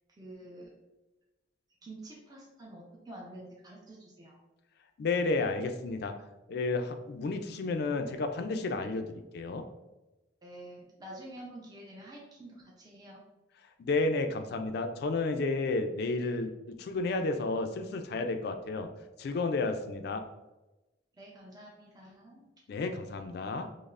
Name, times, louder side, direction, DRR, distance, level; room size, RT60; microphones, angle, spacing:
voice 1, 0.2-0.7 1.8-4.4 10.4-13.3 21.1-22.5, right 1 dB, 20° right, -3 dB, 0.5 m, -48 dB
voice 2, 5.0-6.1 6.5-9.6 13.8-18.9 19.2-20.2 22.7-23.7, left 3 dB, 55° left, 7 dB, 0.3 m, -31 dB
5.1 x 2.0 x 2.4 m, 1.0 s
head